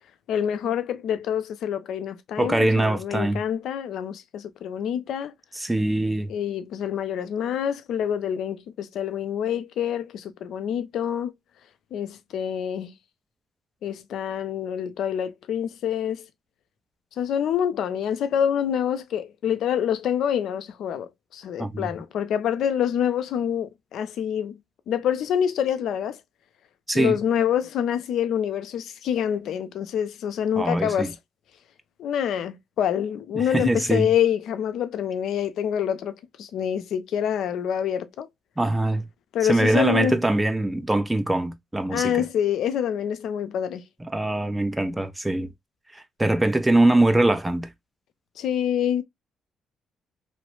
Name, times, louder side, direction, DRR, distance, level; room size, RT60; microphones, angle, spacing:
voice 1, 0.3-5.3 6.3-11.3 11.9-12.9 13.8-16.2 17.2-24.6 24.9-26.2 26.9-31.1 32.0-38.3 39.3-40.1 41.9-43.8 48.4-49.0, left 9 dB, 75° left, 0.4 m, -26 dB
voice 2, 2.4-3.4 5.5-6.3 21.6-22.0 26.9-27.2 30.6-31.1 33.3-34.1 38.6-39.0 39.4-42.2 44.0-45.5 45.9-47.7, right 1 dB, 10° right, 0.5 m, -23 dB
3.0 x 2.0 x 3.0 m
cardioid pair, 90°, 0 cm